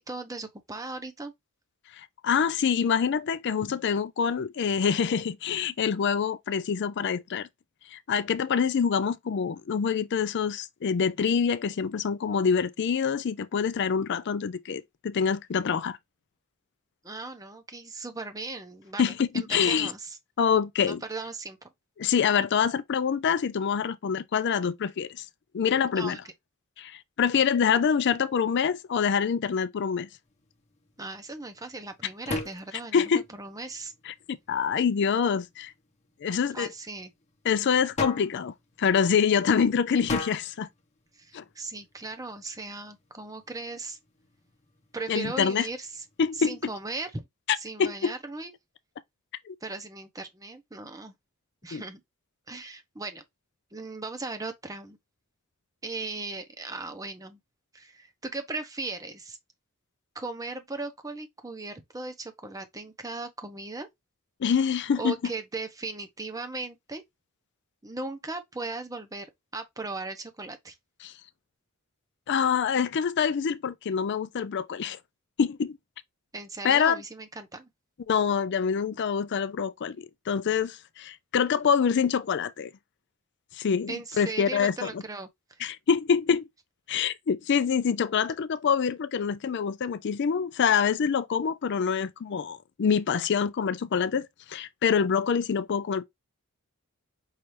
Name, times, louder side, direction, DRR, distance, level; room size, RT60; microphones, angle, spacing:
voice 1, 0.0-1.3 17.0-20.2 20.8-21.7 25.9-26.2 31.0-33.9 36.5-37.1 41.1-44.0 44.9-46.0 46.3-47.2 47.6-48.5 49.6-51.1 51.6-52.0 52.5-53.2 53.7-55.0 55.8-57.4 57.7-59.4 60.1-63.9 65.0-67.0 67.8-70.8 76.3-77.7 83.9-85.6, right 3 dB, 15° right, 0.8 m, -37 dB
voice 2, 2.0-7.5 7.9-16.0 19.0-19.9 20.4-21.0 22.0-25.2 25.5-26.2 26.8-30.1 32.9-33.2 34.1-35.7 36.2-36.7 37.4-38.5 38.8-40.7 41.3-41.4 45.1-45.7 46.2-46.6 47.8-48.1 49.5-49.6 51.7-51.8 64.4-65.1 71.0-71.1 72.3-75.0 75.4-75.8 76.6-77.0 78.1-82.7 83.6-84.9 85.6-86.5 86.9-96.0, left 6 dB, 55° left, 0.4 m, -26 dB
sound 1, 30.2-47.1, left 2 dB, 30° left, 1.0 m, -42 dB
5.6 x 2.7 x 3.1 m
head